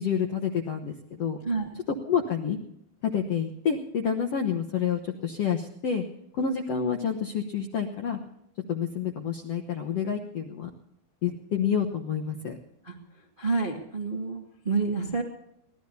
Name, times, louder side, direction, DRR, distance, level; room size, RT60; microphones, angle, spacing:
voice 1, 0.0-1.4 2.1-2.6 3.0-6.0 6.3-8.2 8.7-10.7 11.2-12.6, left 7 dB, 65° left, 3 dB, 1.6 m, -28 dB
voice 2, 13.4-15.2, right 4 dB, 30° right, 0 dB, 0.9 m, -28 dB
23.5 x 17.0 x 2.7 m, 0.77 s
omnidirectional pair, 4.3 m